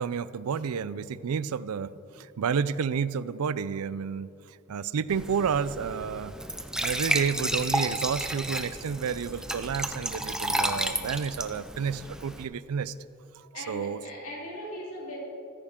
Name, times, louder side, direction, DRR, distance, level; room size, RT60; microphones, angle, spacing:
voice 1, 0.0-6.3 6.8-12.9 13.4-14.0, right 6 dB, 80° right, 17 dB, 0.4 m, -30 dB
Glass / Trickle dribble / Fill (with liquid), 5.1-12.4, right 1 dB, 5° right, 0.5 m, -32 dB
voice 2, 13.5-15.2, equal, 75° left, -4 dB, 3.6 m, -39 dB
15.0 x 14.0 x 3.7 m, 2.7 s
head